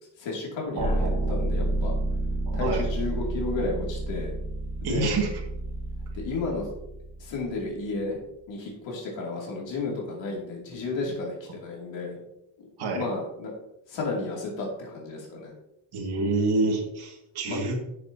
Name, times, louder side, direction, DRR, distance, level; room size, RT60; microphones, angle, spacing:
voice 1, 0.2-1.9 2.5-4.3 4.8-5.2 6.1-6.7 7.2-8.2 8.5-12.2 12.6-13.5 13.9-15.5 17.5-17.6, left 3 dB, 80° left, -2 dB, 2.6 m, -32 dB
sound 1, 0.8-7.7, right 2 dB, 15° left, 1.3 m, -30 dB
voice 2, 0.8-1.3 2.5-2.8 4.8-5.3 12.8-13.1 15.9-17.7, right 3 dB, 60° right, -1 dB, 2.1 m, -28 dB
11.0 x 6.8 x 2.8 m, 0.85 s
cardioid pair, 170°, 44 cm